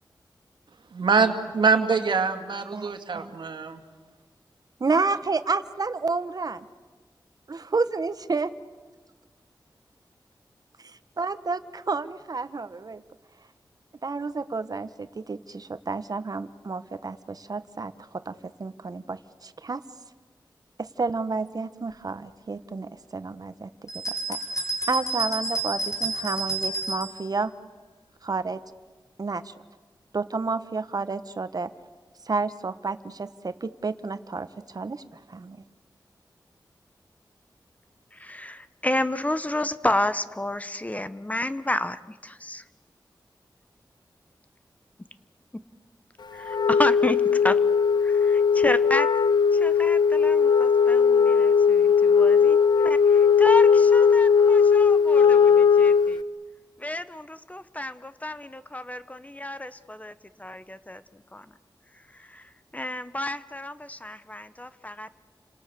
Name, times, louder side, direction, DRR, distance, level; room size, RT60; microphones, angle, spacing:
voice 1, 0.9-3.8, right 5 dB, 85° right, 7 dB, 2.1 m, -24 dB
voice 2, 2.7-3.4 4.8-6.7 7.5-8.5 10.8-13.0 14.0-19.8 20.8-27.5 28.2-28.6 29.2-29.5 30.1-31.7 32.2-35.6, right 4 dB, 55° right, 12 dB, 1.2 m, -30 dB
sound 1, 23.9-27.2, right 2 dB, 45° left, 4.9 m, -30 dB
voice 3, 38.1-42.6 45.5-45.6 46.3-47.6 48.0-49.1 49.5-52.6 52.8-56.2 56.8-61.0 61.3-61.5 62.1-65.2, left 1 dB, 20° left, 13 dB, 1.0 m, -31 dB
Wind instrument woodwind instrument, 46.4-56.2, left 6 dB, 70° left, 0.9 m, -18 dB
30.0 x 26.5 x 6.9 m, 1.4 s
wide cardioid pair, 80°, 8 cm